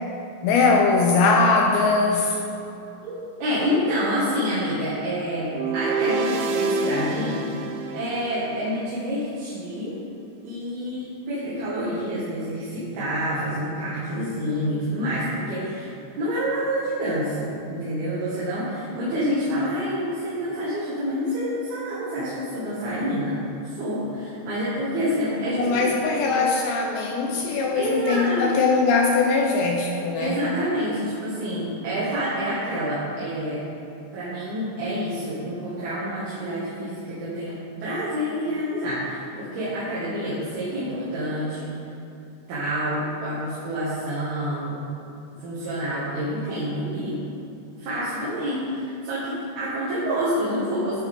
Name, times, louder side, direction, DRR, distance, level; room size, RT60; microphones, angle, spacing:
voice 1, 0.4-2.4 25.6-30.4, left 4 dB, 85° left, 1 dB, 2.5 m, -21 dB
voice 2, 3.0-7.4 7.9-9.9 10.4-26.4 27.7-28.6 30.2-33.6 34.1-41.7 42.5-44.8 45.4-47.2 47.8-51.1, equal, 55° right, -10 dB, 3.5 m, -28 dB
sound 1, 5.5-8.8, right 3 dB, 80° right, 2.7 m, -27 dB
17.0 x 8.7 x 3.7 m, 2.7 s
omnidirectional pair, 6.0 m